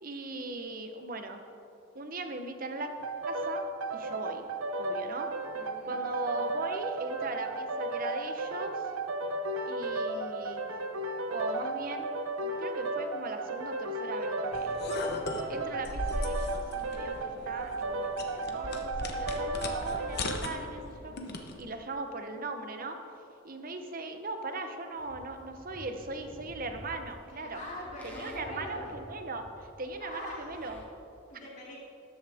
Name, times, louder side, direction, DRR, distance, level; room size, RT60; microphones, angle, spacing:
voice 1, 0.0-1.4 1.9-2.9 3.3-3.7 3.9-4.4 4.8-5.3 5.9-8.8 9.7-10.6 11.3-12.1 12.4-14.8 15.5-21.2 21.6-23.0 23.4-27.6 28.0-30.8, right 2 dB, 45° right, 6 dB, 0.9 m, -39 dB
sound 1, 3.0-20.4, right 2 dB, 85° right, 0.8 m, -34 dB
voice 2, 5.5-6.0 27.3-28.9 30.0-30.5 31.3-31.8, left 1 dB, 35° left, -4 dB, 2.8 m, -43 dB
sound 2, 14.5-21.6, left 2 dB, 50° left, 1.1 m, -38 dB
Livestock farm animals working animals, 25.0-30.9, equal, 10° left, 1.6 m, -50 dB
13.5 x 11.0 x 3.6 m, 2.7 s
head